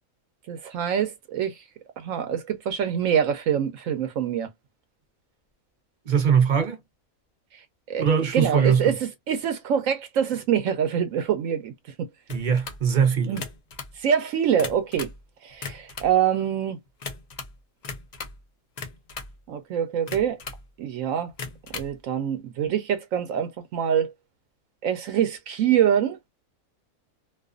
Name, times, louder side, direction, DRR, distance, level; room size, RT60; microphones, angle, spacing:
voice 1, 0.5-1.6 2.0-4.5 7.5-7.6 7.9-9.0 9.3-11.7 12.0-12.1 13.3-13.4 14.0-15.1 15.4-16.8 19.5-20.4 20.8-21.3 21.7-24.1 24.8-26.2, right 8 dB, 75° right, 0.9 m, -25 dB
voice 2, 6.1-6.8 8.0-9.0 12.3-13.4, right 7 dB, 45° right, 0.6 m, -21 dB
sound 1, 12.3-12.8 13.3-13.9 14.4-15.2 15.5-16.2 17.0-17.5 17.8-18.4 18.8-19.4 20.1-20.7 21.3-21.9, left 4 dB, 55° left, 0.4 m, -37 dB
2.4 x 2.4 x 2.4 m
omnidirectional pair, 1.4 m